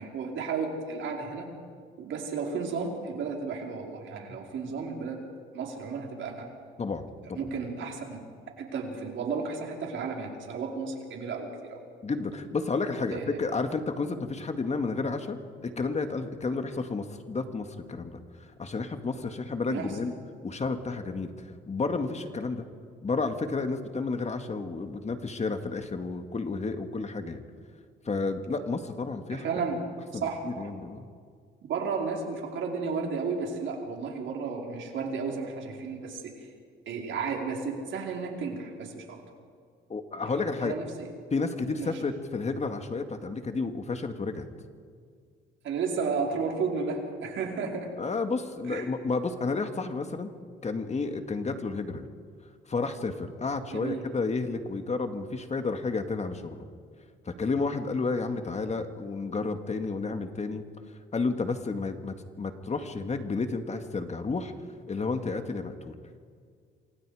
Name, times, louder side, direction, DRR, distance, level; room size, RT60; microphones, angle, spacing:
voice 1, 0.0-1.5 2.0-5.2 5.5-6.5 7.3-8.3 8.6-11.8 13.1-13.4 19.7-20.0 29.3-29.8 30.1-30.7 31.7-36.5 36.9-39.2 40.3-40.4 40.6-41.1 41.8-42.0 45.6-47.9 48.7-48.9 53.7-54.0, right 5 dB, 70° right, 1 dB, 4.6 m, -33 dB
voice 2, 6.8-7.5 12.0-18.2 18.6-20.1 20.4-22.7 23.0-27.4 28.1-29.4 30.1-31.1 39.9-40.7 41.3-44.5 48.0-50.3 50.6-52.1 52.7-56.6 57.3-60.6 61.1-64.5 64.9-65.9, left 4 dB, 35° left, 7 dB, 2.0 m, -31 dB
27.5 x 25.5 x 5.0 m, 2.1 s
cardioid pair, 90°, 20 cm